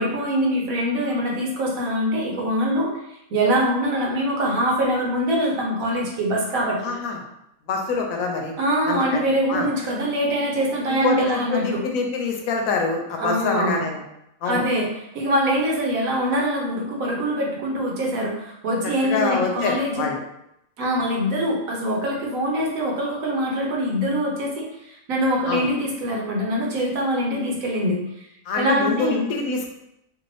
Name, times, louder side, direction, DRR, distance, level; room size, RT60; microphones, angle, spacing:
voice 1, 0.0-2.9 3.3-6.8 8.6-11.8 13.2-13.9 14.5-14.9 15.1-20.1 20.8-28.2 28.5-29.2, equal, 90° right, -2 dB, 1.2 m, -23 dB
voice 2, 6.8-7.2 7.7-8.5 8.9-9.7 10.9-14.0 14.4-14.6 19.0-20.2 25.4-25.7 28.5-29.7, left 4 dB, 90° left, 2 dB, 1.0 m, -25 dB
2.9 x 2.6 x 3.2 m, 0.82 s
omnidirectional pair, 1.4 m